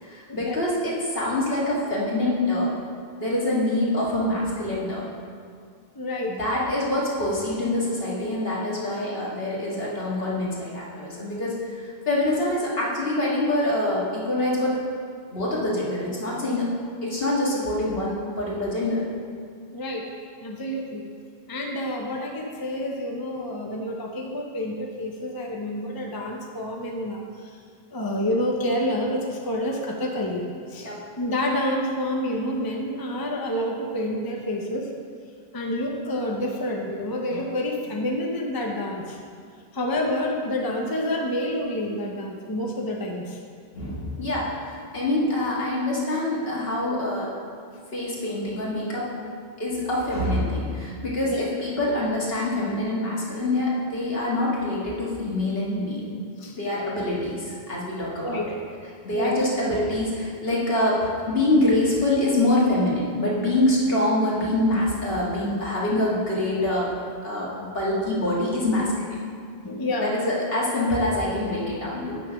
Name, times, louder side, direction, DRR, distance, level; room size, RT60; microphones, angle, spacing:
voice 1, 0.0-2.7 3.2-5.0 6.3-14.8 15.3-16.7 17.0-19.1 30.8-31.0 43.7-47.3 47.9-49.1 49.6-56.1 56.6-58.6 59.0-66.9 67.2-69.2 70.0-72.3, left 1 dB, 65° left, -6 dB, 2.2 m, -25 dB
voice 2, 5.9-6.4 19.7-20.1 20.4-21.0 21.5-27.6 27.9-30.9 31.2-34.9 35.5-39.2 39.7-43.4 51.2-51.5 56.4-56.6 58.2-58.5 59.1-59.4 69.6-70.1, left 1 dB, 25° left, 0 dB, 0.7 m, -28 dB
8.8 x 6.2 x 5.8 m, 2.2 s
omnidirectional pair, 1.1 m